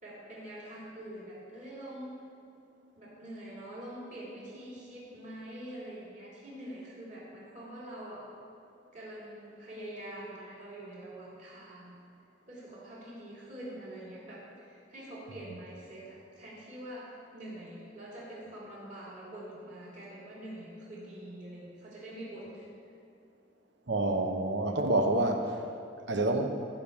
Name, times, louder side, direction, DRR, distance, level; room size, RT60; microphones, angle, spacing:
voice 1, 0.0-2.1 2.9-8.2 8.9-11.9 12.5-22.7, right 1 dB, 45° right, -7 dB, 3.3 m, -45 dB
voice 2, 23.9-25.5 26.1-26.5, right 2 dB, 70° right, 5 dB, 1.0 m, -27 dB
14.5 x 5.5 x 7.2 m, 2.5 s
head